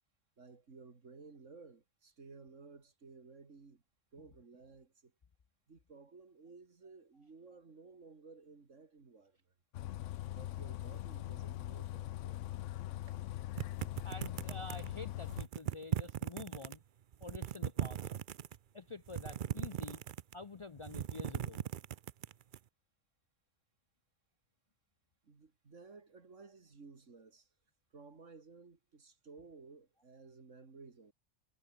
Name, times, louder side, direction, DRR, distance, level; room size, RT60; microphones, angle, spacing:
voice 1, 0.4-3.8 4.1-5.1 5.7-9.4 10.3-12.4 13.1-13.2 25.2-27.5 27.9-31.1, right 4 dB, 85° right, 2.8 m, -56 dB
Bus, 9.7-15.5, left 13 dB, 80° left, 0.9 m, -42 dB
sound 1, 13.6-14.9 15.3-16.8 17.1-18.6 19.1-20.4 20.8-22.6, right 9 dB, 50° right, 0.7 m, -38 dB
voice 2, 14.0-16.8 17.2-18.1 18.7-20.0 20.3-21.7, left 3 dB, 40° left, 0.4 m, -48 dB
omnidirectional pair, 1.3 m